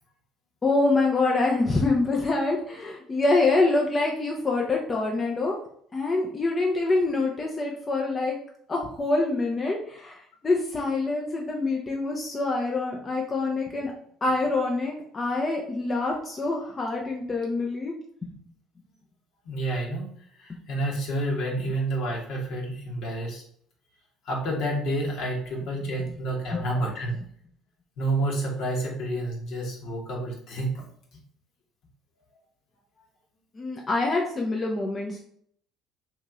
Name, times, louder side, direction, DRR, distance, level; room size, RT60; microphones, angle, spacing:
voice 1, 0.6-5.6 5.9-8.4 8.7-13.9 14.2-17.9 18.2-18.3 20.5-20.6 26.1-26.2 26.5-26.7 33.6-35.2, left 3 dB, 30° left, -1 dB, 0.7 m, -25 dB
voice 2, 19.4-20.1 20.4-23.4 24.2-27.2 28.0-30.7, right 1 dB, 65° left, -1 dB, 1.2 m, -29 dB
3.0 x 2.8 x 3.6 m, 0.64 s
hypercardioid pair, 65°, 0 cm